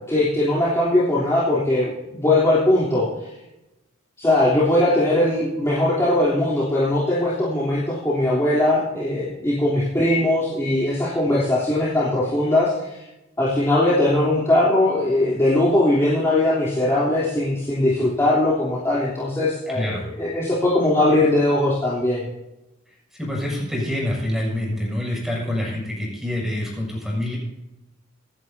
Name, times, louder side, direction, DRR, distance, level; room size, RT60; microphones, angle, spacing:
voice 1, 0.0-3.3 4.2-13.0 13.4-22.3, left 1 dB, 15° left, -9 dB, 3.4 m, -20 dB
voice 2, 19.7-20.0 23.2-27.4, left 1 dB, ahead, -3 dB, 6.6 m, -26 dB
26.5 x 11.0 x 2.8 m, 0.95 s
head